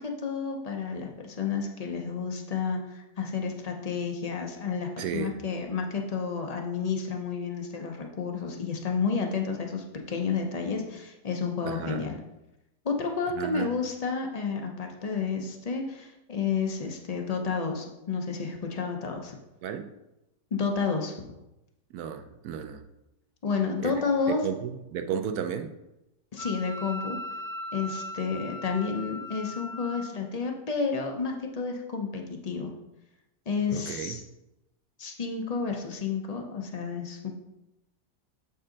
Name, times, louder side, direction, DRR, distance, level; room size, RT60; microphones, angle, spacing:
voice 1, 0.0-12.2 12.8-19.4 20.5-21.1 23.4-24.4 26.3-27.2 27.7-32.7 33.5-34.2 35.0-37.3, left 5 dB, 60° left, 2 dB, 0.4 m, -31 dB
voice 2, 5.0-5.4 11.6-12.1 13.4-13.8 19.6-19.9 21.9-22.8 23.8-23.9 24.4-25.7 33.7-34.2, right 8 dB, 70° right, 9 dB, 1.0 m, -33 dB
Wind instrument woodwind instrument, 26.4-30.1, left 1 dB, 20° left, 0.6 m, -38 dB
7.4 x 5.4 x 3.8 m, 0.92 s
omnidirectional pair, 1.9 m